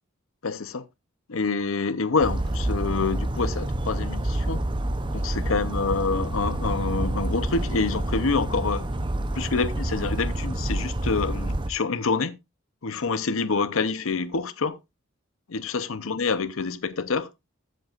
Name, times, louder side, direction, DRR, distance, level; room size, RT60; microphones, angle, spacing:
voice 1, 0.4-0.8 1.3-4.6 5.1-8.9 9.3-12.3 12.8-14.8 15.5-17.3, left 4 dB, 80° left, 0.7 m, -27 dB
Bird vocalization bird call bird song, 2.2-11.7, right 1 dB, 25° right, 0.7 m, -28 dB
15.0 x 7.9 x 2.4 m
head